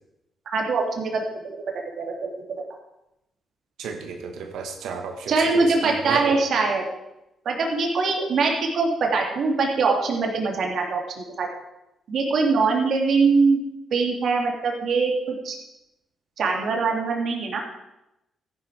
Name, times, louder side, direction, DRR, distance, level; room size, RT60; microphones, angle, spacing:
voice 1, 0.4-1.6 2.0-2.3 5.3-6.8 7.4-11.5 12.1-13.6 13.9-15.5 16.4-17.6, right 4 dB, 65° right, 1 dB, 3.3 m, -23 dB
voice 2, 3.8-6.3, right 5 dB, 85° right, 4 dB, 2.0 m, -33 dB
14.0 x 11.0 x 5.2 m, 0.90 s
cardioid pair, 90°, 0 cm